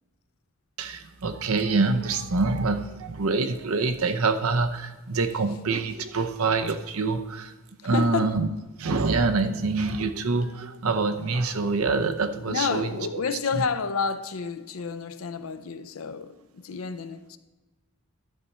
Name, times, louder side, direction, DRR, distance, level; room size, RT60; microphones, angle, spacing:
voice 1, 0.8-7.5 7.8-8.5 8.8-13.2 13.6-13.7, right 3 dB, 75° right, 0.7 m, -26 dB
voice 2, 5.2-5.6 7.9-8.4 12.5-17.4, left 5 dB, 70° left, 0.6 m, -30 dB
11.5 x 4.3 x 6.8 m
head